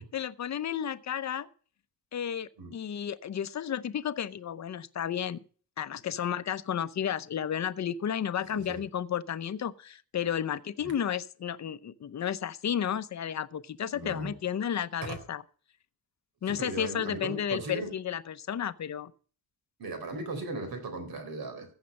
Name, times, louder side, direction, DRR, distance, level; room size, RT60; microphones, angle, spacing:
voice 1, 0.1-1.5 2.1-5.4 5.8-15.4 16.4-19.1, left 9 dB, 50° left, 0.7 m, -32 dB
voice 2, 8.5-8.8 10.8-10.9 13.9-14.4 15.0-15.2 16.5-17.9 19.8-21.7, right 2 dB, 75° right, 4.0 m, -37 dB
15.0 x 8.3 x 5.4 m
wide cardioid pair, 160°, 36 cm